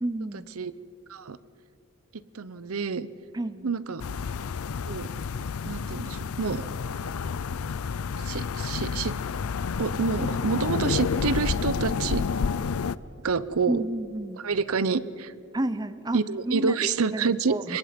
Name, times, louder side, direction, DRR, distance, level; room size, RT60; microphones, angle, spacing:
voice 1, 0.0-0.5 3.3-3.7 13.7-14.4 15.5-17.8, right 1 dB, 20° right, 14 dB, 0.5 m, -31 dB
voice 2, 2.1-3.1 3.6-4.0 4.8-5.1 5.7-6.6 8.2-9.1 9.8-12.3 13.2-13.8 14.4-15.3 16.1-17.8, right 5 dB, 85° right, 17 dB, 0.7 m, -28 dB
sound 1, 4.0-13.0, left 5 dB, 85° left, 0.5 m, -30 dB
25.0 x 22.0 x 5.2 m, 2.7 s
head